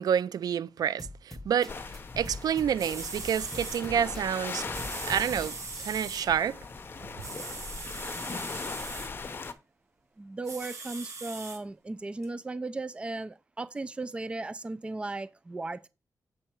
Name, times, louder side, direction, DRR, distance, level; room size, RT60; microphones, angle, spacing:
voice 1, 0.0-4.7 5.0-5.5 5.8-6.6, right 8 dB, 85° right, 0.4 m, -28 dB
sound 1, 1.0-6.0, left 1 dB, 5° left, 0.9 m, -43 dB
sound 2, 1.7-9.5, left 4 dB, 35° left, 0.7 m, -39 dB
sound 3, 2.5-2.6 2.8-3.8 4.7-6.3 7.2-9.1 10.4-11.6 12.2-12.3, right 4 dB, 55° right, 1.9 m, -40 dB
voice 2, 10.2-15.9, right 2 dB, 15° right, 0.4 m, -36 dB
7.5 x 5.6 x 4.5 m
wide cardioid pair, 175°, 6 cm